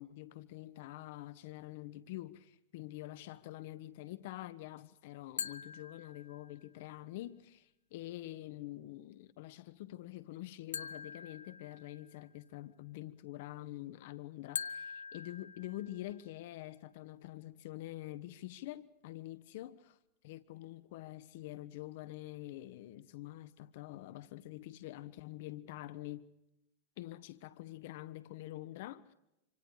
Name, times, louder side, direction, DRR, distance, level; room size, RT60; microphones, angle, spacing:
voice 1, 0.0-19.7 20.2-26.3 27.0-29.1, left 16 dB, 65° left, 1.2 m, -46 dB
sound 1, 5.4-6.7 10.7-12.3 14.6-16.3, left 7 dB, 90° left, 0.7 m, -44 dB
26.5 x 26.5 x 4.9 m
hypercardioid pair, 105°, 0 cm